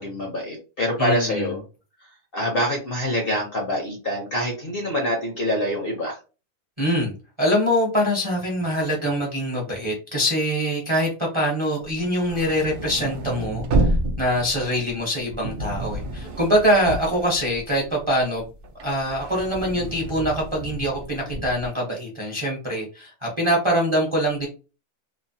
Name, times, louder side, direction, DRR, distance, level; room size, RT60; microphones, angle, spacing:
voice 1, 0.0-1.6 2.3-6.2, equal, 50° left, 0 dB, 0.7 m, -25 dB
voice 2, 1.0-1.6 6.8-18.5 18.8-24.5, equal, 30° right, -1 dB, 0.6 m, -24 dB
sound 1, 11.9-18.0 18.4-21.7, right 1 dB, 80° right, 0.5 m, -29 dB
3.1 x 2.0 x 2.6 m, 0.32 s
omnidirectional pair, 1.6 m